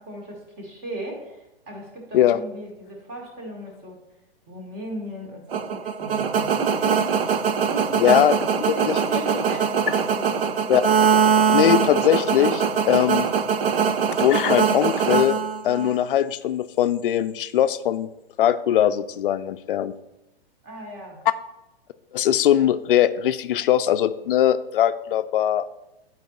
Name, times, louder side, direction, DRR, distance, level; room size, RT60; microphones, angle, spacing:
voice 1, 0.0-4.0 4.5-7.4 7.7-8.1 8.6-10.6 20.6-21.2, right 1 dB, 30° right, 0 dB, 2.2 m, -36 dB
sound 1, 5.5-16.0, right 7 dB, 65° right, 0.7 m, -22 dB
voice 2, 8.0-8.3 8.9-9.0 10.7-10.9 11.5-13.3 14.2-15.4 15.6-18.1 18.4-19.9 22.1-25.6, left 11 dB, 60° left, 12 dB, 0.4 m, -20 dB
10.5 x 4.5 x 3.1 m, 0.94 s
hypercardioid pair, 120°, 31 cm